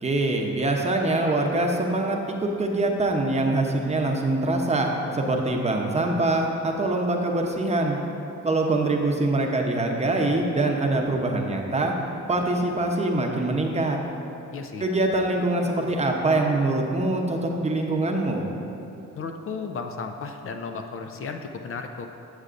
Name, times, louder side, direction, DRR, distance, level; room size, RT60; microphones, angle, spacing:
voice 1, 0.0-8.0 8.4-11.9 12.3-14.0 14.8-18.5, right 2 dB, 20° right, 1 dB, 0.7 m, -24 dB
voice 2, 14.5-14.8 19.1-22.1, left 5 dB, 45° left, 5 dB, 0.5 m, -34 dB
8.1 x 7.9 x 2.5 m, 2.8 s
cardioid pair, 90°, 30 cm